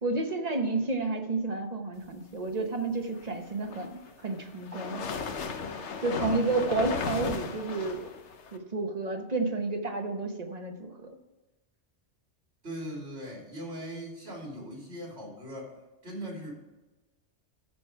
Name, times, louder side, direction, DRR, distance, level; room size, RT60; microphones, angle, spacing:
voice 1, 0.0-5.0 6.0-8.1 8.5-11.2, right 3 dB, 35° right, 4 dB, 1.1 m, -31 dB
sound 1, 3.5-8.6, left 5 dB, 70° left, 1.2 m, -35 dB
voice 2, 6.1-6.4 12.6-15.7 16.0-16.5, equal, 65° right, -1 dB, 3.1 m, -39 dB
13.5 x 5.1 x 4.7 m, 1.1 s
omnidirectional pair, 1.2 m